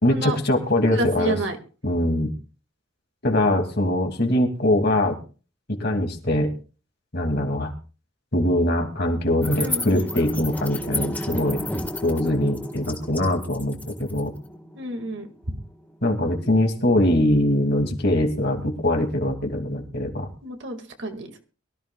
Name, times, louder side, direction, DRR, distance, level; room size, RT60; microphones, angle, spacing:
voice 1, 0.0-1.4 1.8-2.3 3.2-5.2 5.7-6.5 7.1-7.7 8.3-11.6 12.0-14.3 16.0-20.3, left 1 dB, 50° left, 3 dB, 2.4 m, -22 dB
voice 2, 0.9-1.6 9.6-10.1 14.8-15.6 20.4-21.4, right 1 dB, 65° right, 5 dB, 2.0 m, -30 dB
sound 1, 9.4-15.9, left 1 dB, 10° left, 1.5 m, -32 dB
23.0 x 14.0 x 2.3 m, 0.36 s
head